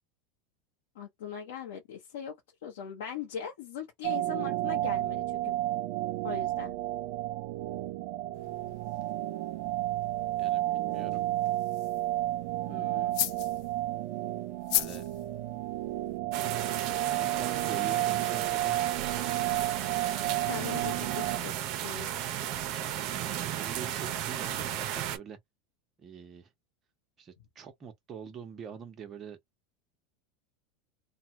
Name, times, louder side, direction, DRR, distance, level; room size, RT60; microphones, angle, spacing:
voice 1, 0.9-2.4 2.6-5.6 6.2-6.7 12.7-13.2 20.5-21.5 21.8-22.1, left 7 dB, 85° left, 1.1 m, -40 dB
sound 1, 4.0-21.4, right 15 dB, 70° right, 0.4 m, -32 dB
sound 2, 8.3-16.2, left 13 dB, 60° left, 0.6 m, -39 dB
voice 2, 10.4-11.2 14.7-15.0 16.8-18.8 20.9-21.5 23.2-25.4 26.0-26.5 27.2-29.4, right 7 dB, 30° right, 1.0 m, -45 dB
sound 3, 16.3-25.2, right 11 dB, 50° right, 0.8 m, -34 dB
3.2 x 2.3 x 2.9 m
supercardioid pair, 130°, 0 cm